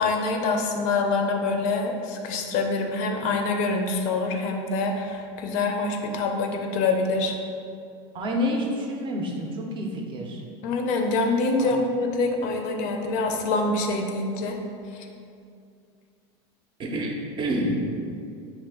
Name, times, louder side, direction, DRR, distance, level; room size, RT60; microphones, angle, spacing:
voice 1, 0.0-7.3 10.6-14.6 14.9-15.1, left 3 dB, 60° left, 3 dB, 0.4 m, -25 dB
voice 2, 8.1-10.4 11.6-11.7 16.8-17.1 17.4-17.8, equal, 35° right, 0 dB, 0.5 m, -28 dB
3.0 x 2.4 x 3.4 m, 2.4 s
supercardioid pair, 110°, 15 cm